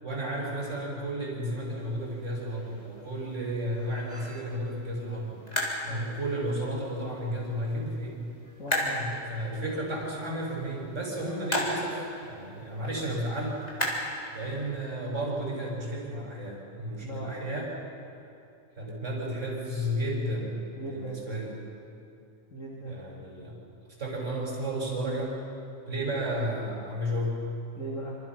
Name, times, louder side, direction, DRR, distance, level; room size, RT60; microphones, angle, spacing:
voice 1, 0.0-5.4 5.8-8.3 8.9-13.6 14.3-17.7 18.8-20.6 20.9-21.5 22.9-23.6 24.0-25.3 25.9-27.4, right 1 dB, 60° right, -4 dB, 6.0 m, -33 dB
sound 1, 1.6-14.9, left 1 dB, 30° left, 4.2 m, -37 dB
voice 2, 8.6-9.0 17.0-17.3 20.7-21.2 22.5-23.0 27.7-28.2, right 1 dB, 75° left, -4 dB, 3.3 m, -38 dB
26.5 x 26.5 x 6.0 m, 2.6 s
omnidirectional pair, 1.4 m